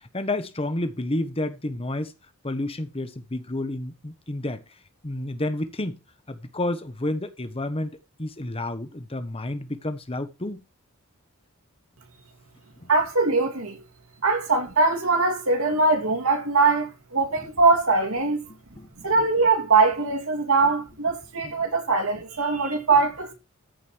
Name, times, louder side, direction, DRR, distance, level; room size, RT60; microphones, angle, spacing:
voice 1, 0.1-2.1 2.4-4.6 5.0-6.0 6.3-7.9 8.2-10.6 12.8-12.9 18.5-18.9 19.2-19.3 21.4-21.5, left 1 dB, 25° left, 1.2 m, -30 dB
voice 2, 12.9-13.8 14.2-18.4 19.0-23.3, right 3 dB, 70° right, 2.7 m, -22 dB
14.0 x 5.4 x 4.6 m
head